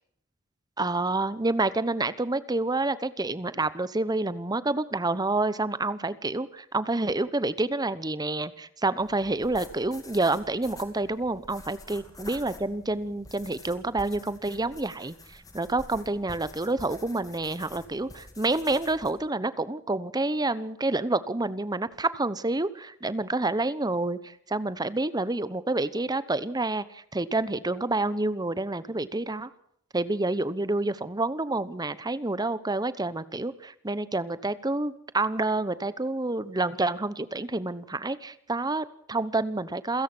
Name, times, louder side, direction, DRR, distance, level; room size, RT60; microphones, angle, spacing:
voice 1, 0.8-29.5 29.9-40.0, right 2 dB, 20° right, 16 dB, 1.0 m, -28 dB
sound 1, 9.0-19.1, left 2 dB, 20° left, 3.1 m, -48 dB
28.0 x 16.5 x 6.2 m, 0.71 s
head